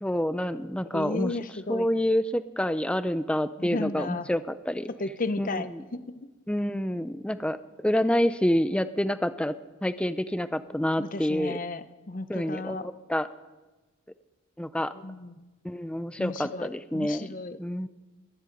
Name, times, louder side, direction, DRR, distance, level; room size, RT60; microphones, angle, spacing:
voice 1, 0.0-1.4 1.7-4.9 5.4-5.8 6.5-7.6 7.8-9.5 9.8-11.6 12.3-13.3 14.6-14.9 15.6-17.3 17.6-17.9, equal, 5° left, 13 dB, 0.5 m, -27 dB
voice 2, 0.9-1.9 3.6-4.3 5.0-6.3 11.0-12.9 15.0-15.5 16.2-17.6, left 2 dB, 40° left, 12 dB, 0.7 m, -34 dB
22.5 x 10.5 x 5.3 m, 1.2 s
head